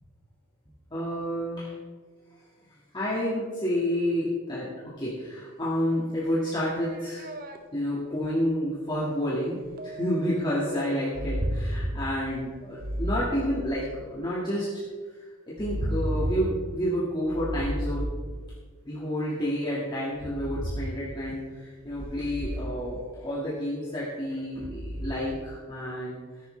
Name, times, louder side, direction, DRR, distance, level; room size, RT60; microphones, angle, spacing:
voice 1, 0.9-1.7 2.9-4.7 5.0-7.3 7.7-14.7 15.5-18.1 18.9-26.2, equal, 20° left, -7 dB, 1.8 m, -29 dB
sound 1, 6.3-7.6 9.8-11.4, right 1 dB, 40° right, 0.8 m, -42 dB
sound 2, 9.6-9.7 11.1-12.1 12.8-13.9 15.6-16.5 17.2-18.4 20.1-20.9 21.8-22.8 24.5-25.1, equal, 80° right, 1.8 m, -31 dB
14.5 x 10.5 x 3.3 m, 1.5 s
head